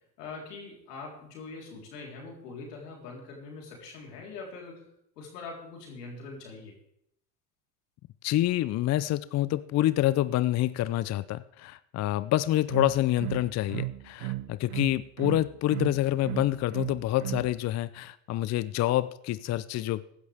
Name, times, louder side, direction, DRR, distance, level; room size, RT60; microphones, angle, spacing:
voice 1, 0.0-4.9 5.2-6.7, left 4 dB, 90° left, -1 dB, 3.9 m, -43 dB
voice 2, 8.2-20.1, left 14 dB, 35° left, 17 dB, 0.5 m, -27 dB
sound 1, 12.4-17.5, right 19 dB, 75° right, 0.8 m, -34 dB
15.5 x 11.0 x 3.5 m, 0.74 s
supercardioid pair, 90°, 46 cm